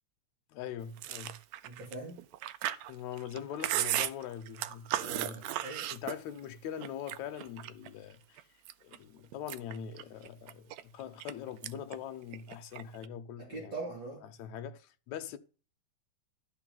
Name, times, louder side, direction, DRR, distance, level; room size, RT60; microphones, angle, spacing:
voice 1, 0.5-1.4 2.9-5.5 5.9-8.4 8.8-13.8 14.2-15.4, left 9 dB, 70° left, 1.9 m, -42 dB
Chewing mastication, 1.0-6.5 6.8-7.9 8.4-9.0 9.3-11.3 11.6-12.0 12.2-13.1, right 13 dB, 80° right, 1.7 m, -36 dB
voice 2, 1.6-2.2 5.0-5.9 13.4-14.2, right 3 dB, 40° right, 2.5 m, -42 dB
13.0 x 4.6 x 7.6 m
omnidirectional pair, 3.8 m